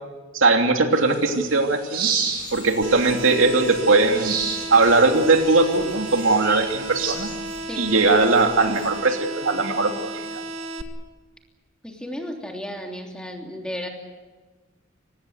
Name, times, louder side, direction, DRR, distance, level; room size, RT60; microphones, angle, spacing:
voice 1, 0.3-2.1 2.5-4.4 4.7-7.3 7.8-10.4, right 3 dB, 70° right, 4 dB, 3.0 m, -19 dB
sound 1, 1.0-7.1, right 6 dB, 50° right, 5.4 m, -32 dB
sound 2, 2.2-9.0, left 3 dB, 20° left, 7.8 m, -43 dB
sound 3, 2.8-10.8, right 2 dB, 90° right, 1.9 m, -34 dB
voice 2, 11.8-13.9, equal, 5° left, 1 dB, 3.2 m, -33 dB
25.0 x 19.5 x 8.1 m, 1.3 s
head